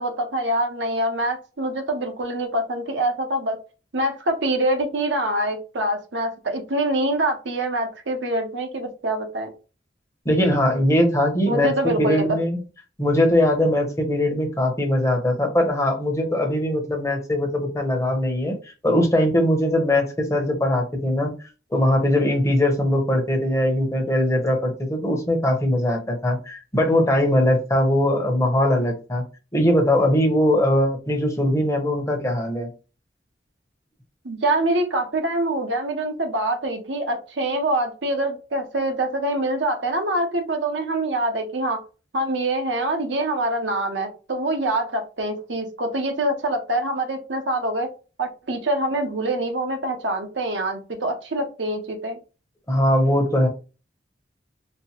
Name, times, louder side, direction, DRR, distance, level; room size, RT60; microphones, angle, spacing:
voice 1, 0.0-3.6 3.9-9.5 11.5-12.4 34.2-41.8 42.1-47.9 48.2-52.2, right 1 dB, 75° right, 5 dB, 0.8 m, -25 dB
voice 2, 10.2-12.6 13.0-18.6 18.8-21.3 21.7-29.2 29.5-32.7 52.7-53.5, left 1 dB, 15° left, 1 dB, 0.8 m, -21 dB
4.2 x 2.1 x 2.9 m, 0.33 s
head